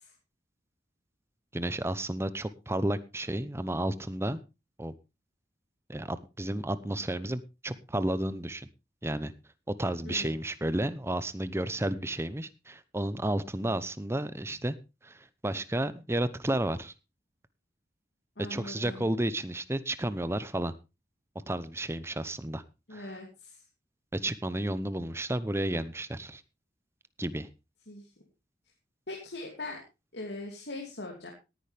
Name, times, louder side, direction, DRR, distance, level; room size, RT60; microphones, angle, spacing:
voice 1, 1.5-4.4 4.8-4.9 5.9-8.7 9.0-9.3 9.7-14.7 15.0-16.9 18.5-20.7 21.3-22.6 22.9-23.1 24.1-26.4 27.2-27.5, right 1 dB, 15° right, 14 dB, 0.8 m, -32 dB
voice 2, 10.1-10.4 18.4-19.0 22.9-23.6 27.9-28.1 29.1-29.8 30.1-31.3, left 2 dB, 75° left, 0 dB, 2.7 m, -40 dB
18.0 x 10.0 x 3.4 m, 0.28 s
head